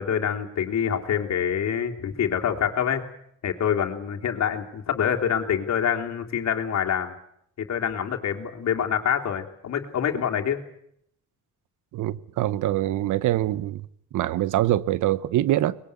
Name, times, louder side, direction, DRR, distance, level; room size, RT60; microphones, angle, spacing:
voice 1, 0.0-3.0 3.4-7.1 7.6-10.6, left 8 dB, 60° left, 3.3 m, -26 dB
voice 2, 11.9-13.9 14.1-15.8, right 14 dB, 80° right, 1.0 m, -24 dB
23.5 x 21.0 x 8.3 m
cardioid pair, 90°, 30 cm